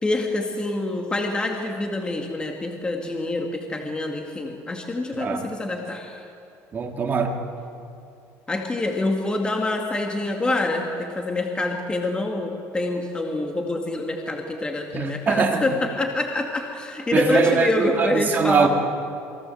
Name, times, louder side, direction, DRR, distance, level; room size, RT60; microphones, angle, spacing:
voice 1, 0.0-6.2 8.5-18.7, left 2 dB, 15° left, 2 dB, 2.3 m, -26 dB
voice 2, 5.1-5.5 6.7-7.4 14.9-15.6 17.1-18.7, right 6 dB, 30° right, 3 dB, 2.8 m, -22 dB
28.0 x 22.5 x 7.9 m, 2.6 s
cardioid pair, 140°, 6 cm